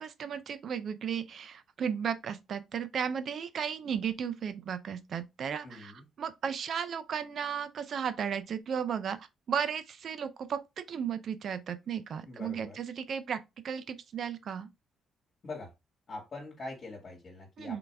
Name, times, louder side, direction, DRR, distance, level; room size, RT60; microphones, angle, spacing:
voice 1, 0.0-14.7 17.6-17.8, right 7 dB, 60° right, 0.5 m, -35 dB
voice 2, 5.6-6.0 12.3-12.8 15.4-15.7 16.1-17.8, left 2 dB, 40° left, 2.0 m, -43 dB
3.9 x 3.3 x 3.3 m
cardioid pair, 90°, 0 cm